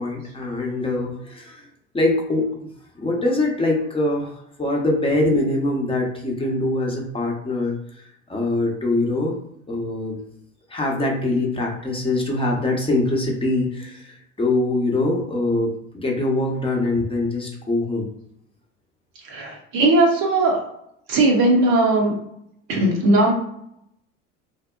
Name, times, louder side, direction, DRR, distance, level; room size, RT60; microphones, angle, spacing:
voice 1, 0.0-1.6 1.9-2.6 3.0-4.3 4.6-7.7 8.3-9.4 9.7-10.2 10.7-18.1, left 2 dB, 15° left, -1 dB, 0.7 m, -23 dB
voice 2, 19.3-20.6 21.1-22.2 22.7-23.3, right 2 dB, 55° right, 0 dB, 0.7 m, -18 dB
2.7 x 2.0 x 2.3 m, 0.76 s
hypercardioid pair, 70°, 37 cm